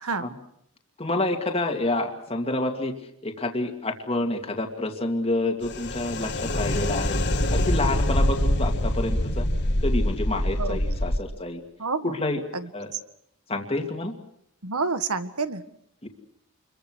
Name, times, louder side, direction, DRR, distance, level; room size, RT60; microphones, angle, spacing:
voice 1, 1.0-2.9 3.2-7.2 7.5-9.5 9.8-11.6 12.0-12.4 12.7-12.9 13.5-14.1 16.0-16.1, left 2 dB, 25° left, 3 dB, 2.4 m, -28 dB
sound 1, 5.6-11.2, left 1 dB, 50° left, 2.2 m, -24 dB
voice 2, 11.8-12.1 12.5-13.0 14.6-15.6, right 4 dB, 80° right, 11 dB, 1.7 m, -29 dB
28.5 x 23.0 x 6.4 m, 0.73 s
head